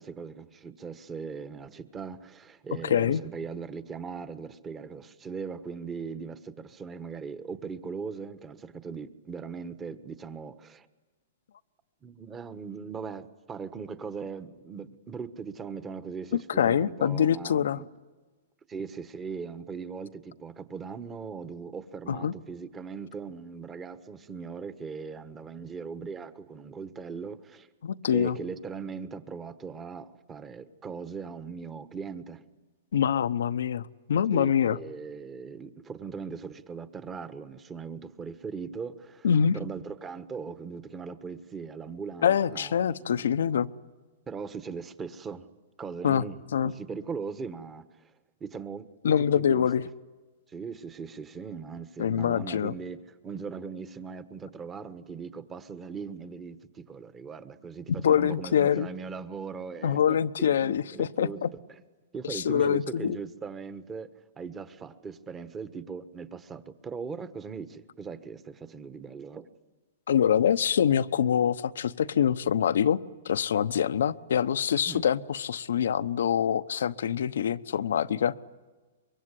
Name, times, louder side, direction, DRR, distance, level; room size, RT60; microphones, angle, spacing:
voice 1, 0.0-10.9 12.0-17.9 18.7-27.7 28.1-32.4 34.3-39.3 39.5-43.3 44.3-45.5 45.8-48.1 48.4-49.7 50.5-61.4 61.7-61.8 62.1-64.1 64.4-69.5 74.8-75.0, right 5 dB, 15° right, 13 dB, 1.3 m, -39 dB
voice 2, 2.8-3.2 16.6-17.8 22.1-22.3 27.8-28.4 32.9-34.8 39.2-39.6 42.2-43.7 46.0-46.2 46.5-46.7 49.0-49.8 52.0-52.7 57.9-58.9 59.8-61.5 62.3-63.2 70.1-73.0 73.2-78.3, left 8 dB, 80° left, 14 dB, 0.9 m, -25 dB
24.5 x 22.5 x 9.9 m, 1.3 s
hypercardioid pair, 140°, 0 cm